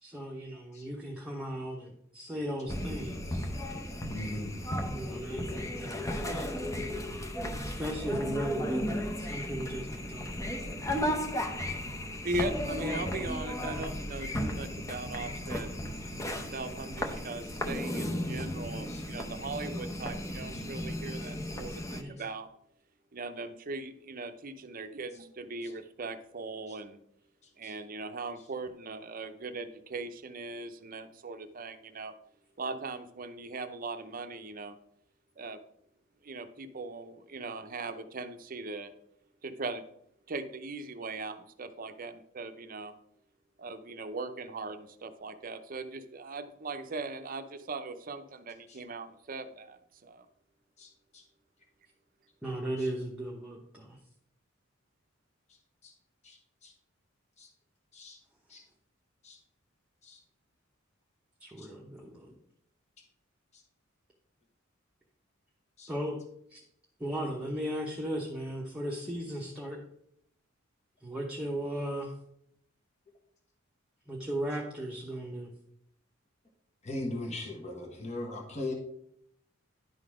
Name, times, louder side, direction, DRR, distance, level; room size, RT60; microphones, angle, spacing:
voice 1, 0.0-3.5 4.9-6.5 7.6-10.5 21.9-22.1 52.4-54.0 61.4-62.3 65.9-66.2 66.5-66.6 67.0-69.8 71.0-72.1 74.1-75.5, right 1 dB, 5° right, -4 dB, 0.9 m, -37 dB
sound 1, 2.7-22.0, left 1 dB, 15° left, 0.7 m, -35 dB
voice 2, 4.1-4.5 6.1-6.2 18.9-19.0 20.5-20.7 21.7-21.8 27.6-27.7 48.7-48.8 50.8-51.2 52.8-52.9 55.8-55.9 56.2-56.4 56.6-56.7 57.4-57.5 57.9-58.2 58.5-58.6 59.2-59.4 60.0-60.2 61.6-61.7 65.8-65.9 76.8-78.7, left 2 dB, 35° left, 1 dB, 1.2 m, -39 dB
voice 3, 12.2-22.5 23.1-27.0 27.6-32.1 32.6-34.7 35.4-35.6 36.2-38.9 39.4-39.8 40.3-42.9 43.6-50.3, right 3 dB, 45° right, 9 dB, 0.6 m, -39 dB
10.5 x 4.0 x 4.9 m, 0.72 s
head